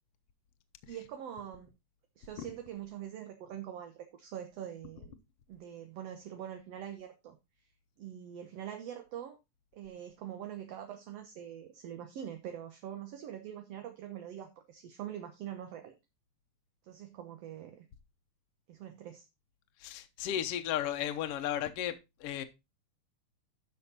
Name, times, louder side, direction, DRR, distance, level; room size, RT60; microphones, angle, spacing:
voice 1, 0.9-1.7 2.2-5.2 5.5-7.4 8.0-9.4 9.7-15.9 16.8-17.9 18.7-19.3, right 10 dB, 60° right, 2.0 m, -44 dB
voice 2, 19.8-22.4, left 11 dB, 65° left, 1.7 m, -35 dB
11.5 x 6.5 x 4.1 m
omnidirectional pair, 3.6 m